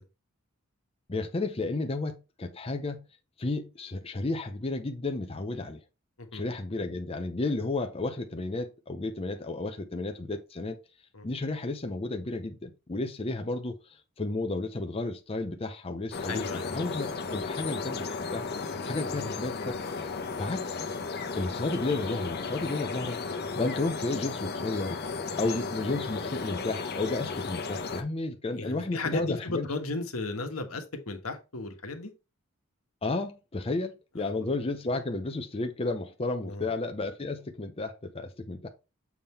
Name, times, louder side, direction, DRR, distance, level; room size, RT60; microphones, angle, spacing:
voice 1, 1.1-3.0 3.4-5.8 6.3-10.8 11.2-18.4 18.8-20.1 20.4-20.8 21.4-23.2 23.5-25.0 25.4-29.7 33.0-38.7, left 2 dB, 25° left, 0.6 m, -32 dB
sound 1, 16.1-28.0, left 4 dB, 50° left, 1.0 m, -34 dB
voice 2, 16.3-16.7 19.1-19.3 25.4-25.7 28.5-32.1 34.2-34.3 36.4-36.7, left 2 dB, 75° left, 1.3 m, -35 dB
7.1 x 3.7 x 4.2 m
head